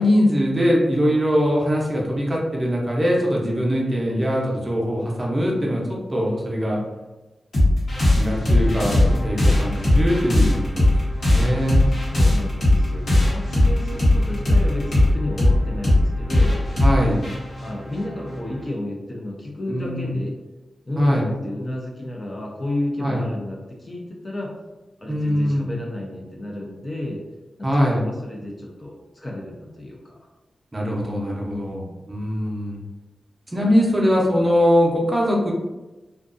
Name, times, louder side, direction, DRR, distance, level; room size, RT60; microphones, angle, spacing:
voice 1, 0.0-6.8 8.1-9.0 9.2-10.9 11.2-11.9 16.8-17.2 19.7-20.1 21.0-21.3 23.0-23.2 25.1-25.7 27.6-28.1 30.7-32.8 33.5-35.5, equal, 30° right, -3 dB, 0.6 m, -21 dB
sound 1, 7.5-18.6, left 1 dB, 70° left, 1.0 m, -19 dB
voice 2, 11.9-16.6 17.5-20.4 20.9-24.6 25.0-27.2 27.6-30.2 31.4-32.0, left 1 dB, 30° left, -2 dB, 0.5 m, -32 dB
2.5 x 2.3 x 2.5 m, 1.1 s
wide cardioid pair, 80°, 0 cm